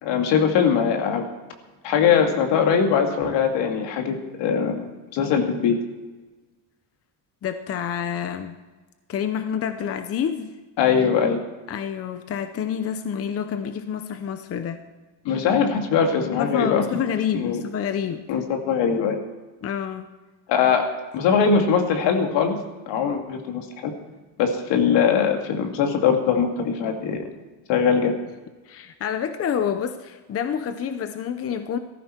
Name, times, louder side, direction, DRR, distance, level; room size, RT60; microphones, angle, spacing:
voice 1, 0.0-1.2 1.8-4.8 5.1-5.8 10.8-11.4 15.2-16.8 17.3-17.6 18.3-19.2 20.5-20.8 21.1-22.6 22.9-23.9 24.4-27.2 27.7-28.1, left 6 dB, 75° left, 4 dB, 2.4 m, -21 dB
voice 2, 7.4-8.5 9.1-10.5 11.7-14.8 16.4-18.2 19.6-20.1 28.7-31.8, left 8 dB, 35° left, 9 dB, 0.8 m, -28 dB
17.0 x 14.5 x 4.5 m, 1.2 s
cardioid pair, 155°, 43 cm